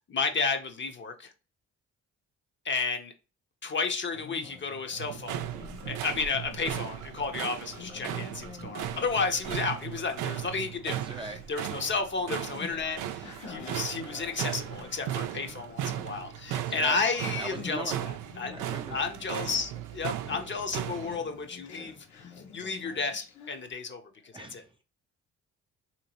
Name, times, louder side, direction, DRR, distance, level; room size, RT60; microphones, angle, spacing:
voice 1, 0.1-1.3 2.6-3.1 3.6-5.4 5.9-11.0 11.5-18.1 18.4-18.6 18.9-22.1 22.5-24.6, left 4 dB, 40° left, 0.7 m, -32 dB
Conversation, 4.0-23.7, left 5 dB, 70° left, 1.1 m, -49 dB
sound 1, 5.0-21.2, right 11 dB, 85° right, 0.5 m, -37 dB
voice 2, 10.8-11.4 13.4-13.8 16.5-18.1 18.5-19.1 24.3-24.8, right 2 dB, 15° right, 0.5 m, -41 dB
3.1 x 2.9 x 2.9 m
cardioid pair, 90°, 30 cm